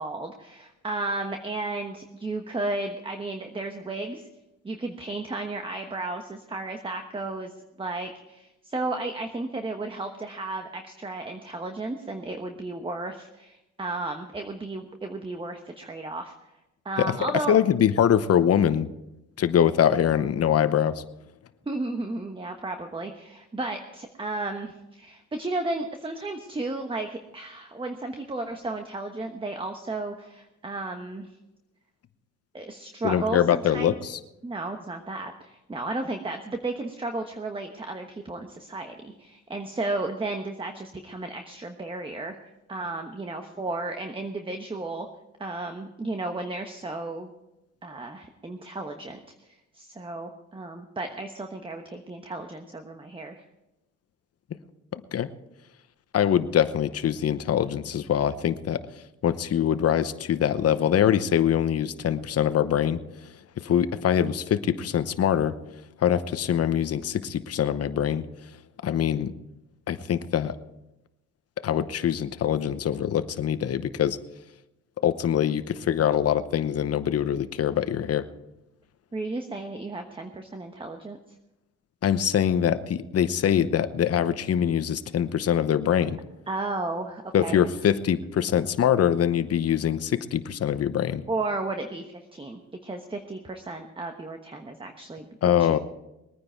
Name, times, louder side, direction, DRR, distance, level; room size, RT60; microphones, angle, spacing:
voice 1, 0.0-4.3 4.6-7.5 7.8-16.5 16.8-17.6 21.7-31.3 32.5-34.0 34.4-42.4 42.7-45.1 45.4-47.3 47.8-53.4 79.1-81.2 86.5-87.6 91.3-95.2 95.6-95.7, right 2 dB, 15° right, 5 dB, 1.2 m, -33 dB
voice 2, 17.5-18.9 19.4-21.0 33.0-34.2 55.1-55.3 56.1-58.8 59.2-63.0 63.6-65.5 66.0-68.2 68.8-69.3 69.9-70.5 71.6-74.2 75.0-78.3 82.0-86.2 87.3-91.2 95.4-95.8, left 9 dB, 50° left, 12 dB, 0.9 m, -23 dB
21.0 x 9.6 x 4.6 m, 0.92 s
cardioid pair, 90°, 30 cm